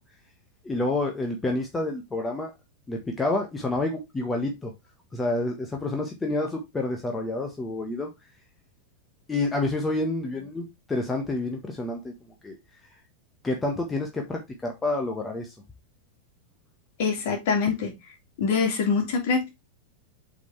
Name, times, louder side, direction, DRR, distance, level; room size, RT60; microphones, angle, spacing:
voice 1, 0.6-2.5 2.9-4.7 5.1-8.1 9.3-12.1 12.4-12.6 13.4-15.5, left 2 dB, 15° left, 1.4 m, -28 dB
voice 2, 17.0-17.9 18.4-19.5, left 5 dB, 50° left, 3.0 m, -24 dB
8.0 x 4.6 x 3.4 m
figure-of-eight pair, 90°, 0 cm